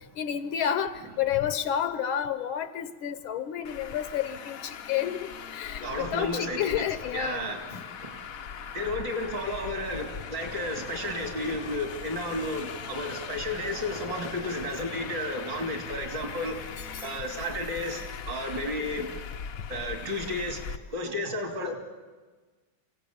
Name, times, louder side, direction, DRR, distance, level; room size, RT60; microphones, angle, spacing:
voice 1, 0.2-7.8, left 9 dB, 70° left, 12 dB, 1.7 m, -30 dB
Traffic noise roadway noise, 3.6-20.8, left 7 dB, 55° left, 1.0 m, -40 dB
voice 2, 5.8-6.9 7.1-7.7 8.0-8.2 8.7-16.7 17.0-19.1 19.7-20.6 20.9-21.8, left 1 dB, 55° right, 4 dB, 3.6 m, -32 dB
sound 1, 9.4-17.0, left 2 dB, 85° right, 3.3 m, -51 dB
27.0 x 16.5 x 8.7 m, 1.4 s
omnidirectional pair, 2.3 m